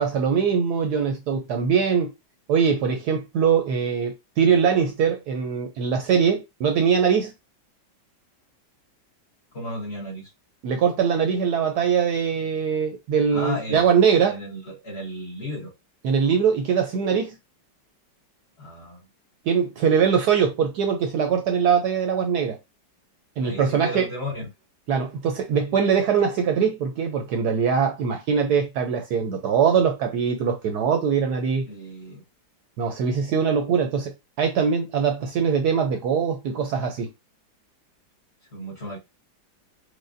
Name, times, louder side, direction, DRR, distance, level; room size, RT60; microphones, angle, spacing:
voice 1, 0.0-2.1 2.5-7.3 10.6-14.4 16.0-17.3 19.5-22.6 23.4-24.1 24.9-31.6 32.8-34.1 34.4-37.1, right 6 dB, 70° right, 1.0 m, -22 dB
voice 2, 9.5-10.3 13.3-13.9 14.2-15.7 18.6-19.0 23.4-24.5 31.6-32.2 38.5-39.0, left 1 dB, 40° left, 1.1 m, -34 dB
4.8 x 2.2 x 2.5 m
omnidirectional pair, 2.0 m